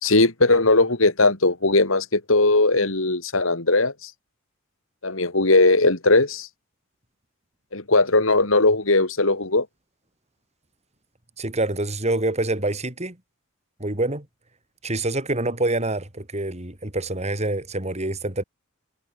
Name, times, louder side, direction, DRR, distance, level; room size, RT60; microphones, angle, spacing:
voice 1, 0.0-4.1 5.0-6.5 7.7-9.7, left 2 dB, 70° left, 3.1 m, -19 dB
voice 2, 11.4-13.2 13.8-14.3 14.8-18.4, right 2 dB, 30° right, 4.1 m, -26 dB
head